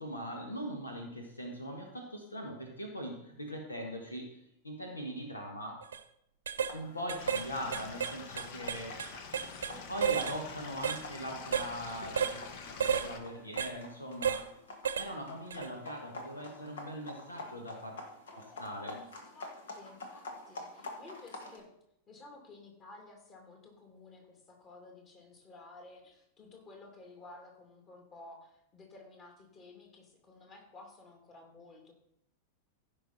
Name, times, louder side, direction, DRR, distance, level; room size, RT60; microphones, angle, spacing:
voice 1, 0.0-4.4 4.6-5.8 6.7-9.2 9.9-12.4 12.8-14.4 14.9-18.0 18.6-19.0, equal, 80° left, 2 dB, 1.6 m, -41 dB
sound 1, 5.8-6.0 6.5-6.7 7.1-7.5 7.7-9.7 10.0-10.4 10.8-11.0 11.5-11.7 12.2-12.4 12.8-13.1 13.6-13.7 14.2-14.4 14.9-15.1 15.5-15.7, right 8 dB, 65° right, 0.6 m, -31 dB
sound 2, 6.6-21.6, left 2 dB, 65° left, 1.6 m, -49 dB
Stream / Liquid, 7.2-13.2, left 5 dB, 50° left, 1.2 m, -47 dB
voice 2, 9.3-9.9 18.3-19.1 19.3-21.7 22.1-31.9, left 2 dB, 30° left, 1 dB, 2.7 m, -54 dB
15.5 x 5.7 x 4.2 m, 0.76 s
figure-of-eight pair, 90°, 0 cm